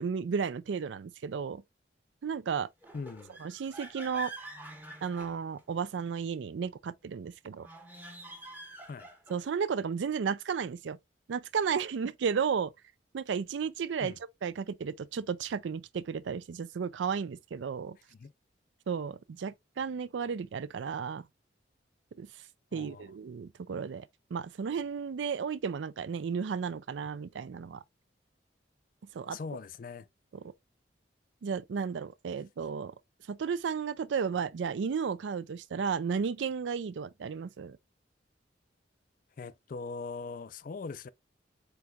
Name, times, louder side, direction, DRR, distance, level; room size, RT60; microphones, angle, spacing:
voice 1, 0.0-1.6 2.2-2.7 3.4-4.3 5.0-7.7 9.3-11.0 11.3-12.7 13.1-14.1 14.4-18.0 18.9-21.3 22.2-22.3 22.7-24.1 24.3-27.8 29.1-29.4 30.3-30.4 31.4-32.9 33.3-37.8, right 6 dB, 80° right, 0.4 m, -33 dB
sound 1, 2.8-5.9 7.5-9.6, right 1 dB, 10° right, 0.8 m, -46 dB
voice 2, 2.9-3.4 8.9-9.1 14.0-14.2 18.2-18.3 22.7-23.0 29.3-30.1 39.4-41.1, left 4 dB, 45° left, 0.4 m, -40 dB
7.8 x 2.9 x 2.3 m
head